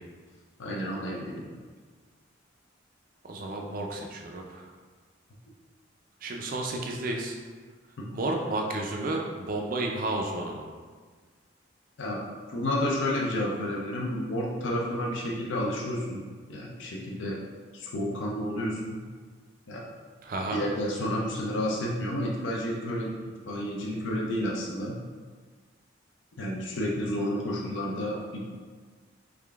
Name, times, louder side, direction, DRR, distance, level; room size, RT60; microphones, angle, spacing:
voice 1, 0.6-1.6 12.0-12.2 12.5-16.2 16.5-17.4 17.7-19.0 19.7-19.8 20.5-23.1 23.5-24.9 26.4-28.4, left 1 dB, 70° left, -2 dB, 0.5 m, -30 dB
voice 2, 3.2-4.7 6.2-7.4 8.1-10.7 20.2-20.6, right 2 dB, 45° right, 1 dB, 0.4 m, -32 dB
3.6 x 3.2 x 2.3 m, 1.5 s
head